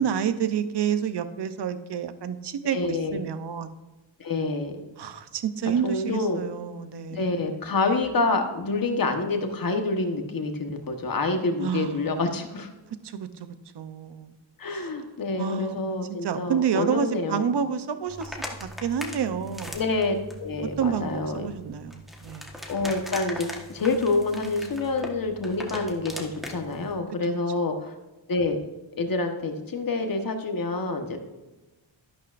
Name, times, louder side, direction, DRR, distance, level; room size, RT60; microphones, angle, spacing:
voice 1, 0.0-3.8 5.0-7.6 11.6-12.2 13.0-13.5 13.7-14.4 14.7-14.9 15.4-16.0 16.2-19.8 20.8-22.5 27.2-27.7, right 7 dB, 60° right, 11 dB, 0.8 m, -29 dB
voice 2, 2.7-3.2 4.2-4.7 5.8-6.4 7.1-12.7 14.6-17.5 19.7-21.5 22.7-27.9 28.3-28.6 29.0-31.2, left 3 dB, 45° left, 5 dB, 1.3 m, -27 dB
sound 1, 18.1-27.0, left 1 dB, ahead, 1.3 m, -40 dB
12.0 x 11.5 x 2.6 m, 1.1 s
wide cardioid pair, 160°, 47 cm